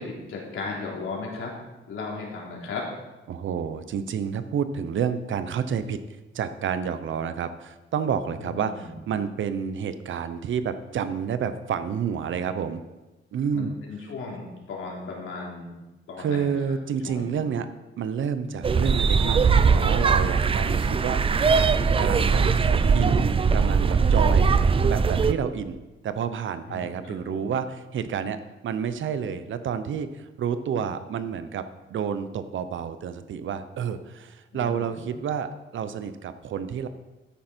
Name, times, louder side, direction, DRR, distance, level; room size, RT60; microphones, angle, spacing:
voice 1, 0.0-1.5 1.9-2.8 8.4-9.0 13.5-15.8 16.1-16.6 17.0-17.4 26.7-27.5 34.5-35.0, left 4 dB, 80° left, -2 dB, 3.5 m, -36 dB
voice 2, 3.3-6.0 6.3-12.8 13.3-13.7 16.2-17.7 18.0-22.4 22.9-36.9, right 7 dB, 70° right, 11 dB, 0.9 m, -29 dB
sound 1, 18.6-25.3, right 5 dB, 25° right, 0.5 m, -20 dB
13.0 x 10.0 x 4.5 m, 1.1 s
wide cardioid pair, 170°, 21 cm